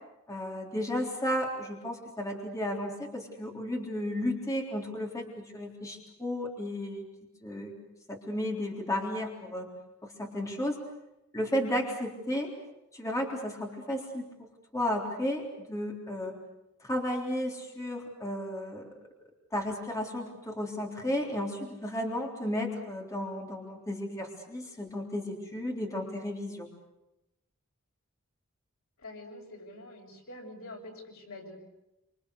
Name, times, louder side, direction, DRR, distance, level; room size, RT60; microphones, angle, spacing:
voice 1, 0.3-7.0 7.4-7.7 8.1-9.7 10.0-10.8 11.3-12.5 12.9-16.3 16.8-18.9 19.5-26.7, left 1 dB, 15° left, 0 dB, 3.7 m, -33 dB
voice 2, 29.0-31.6, left 1 dB, 85° left, 1 dB, 7.2 m, -46 dB
27.0 x 26.0 x 6.7 m, 0.91 s
head